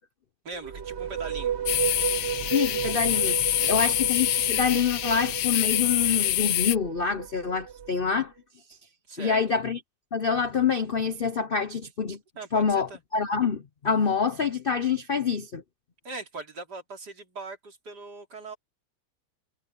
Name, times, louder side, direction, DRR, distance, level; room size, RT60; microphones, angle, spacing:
voice 1, 0.4-1.6 3.6-4.0 9.1-9.4 12.4-13.0 16.0-18.6, right 3 dB, 60° right, 3.6 m, -40 dB
sound 1, 0.5-8.2, right 9 dB, 45° right, 1.0 m, -33 dB
sound 2, 1.7-6.8, left 13 dB, 80° left, 1.4 m, -26 dB
voice 2, 2.5-3.4 3.7-8.3 9.2-9.8 10.1-12.2 12.5-15.6, left 6 dB, 50° left, 0.6 m, -26 dB
omnidirectional pair, 2.0 m